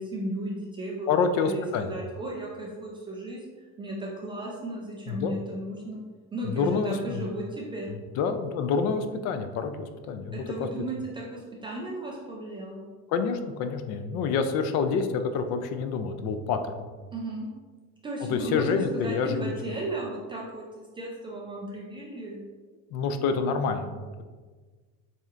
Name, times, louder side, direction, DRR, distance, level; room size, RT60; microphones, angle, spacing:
voice 1, 0.0-1.1 1.4-3.4 3.8-6.0 6.3-7.9 10.3-12.8 17.1-17.5 18.0-22.4, right 1 dB, 15° right, -3 dB, 0.3 m, -35 dB
voice 2, 1.1-1.9 5.1-5.3 6.4-7.3 7.9-10.5 13.1-16.9 18.3-19.5 22.9-24.2, left 5 dB, 50° left, 8 dB, 0.4 m, -28 dB
7.4 x 2.8 x 2.4 m, 1.4 s
cardioid pair, 170°, 34 cm